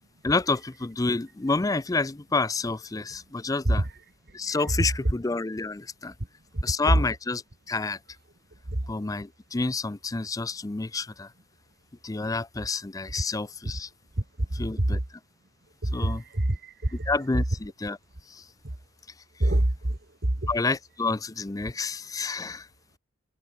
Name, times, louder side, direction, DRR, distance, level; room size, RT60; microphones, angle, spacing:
voice 1, 0.2-3.8 4.3-6.1 6.6-7.4 7.7-8.0 8.9-11.3 12.0-13.9 14.5-15.0 15.9-16.2 17.1-18.0 18.3-18.5 20.5-22.7, left 3 dB, 15° left, 0.4 m, -29 dB
voice 2, 3.6-4.0 4.5-5.1 6.5-7.0 16.0-17.4 19.4-20.0, right 1 dB, 50° right, 1.7 m, -25 dB
head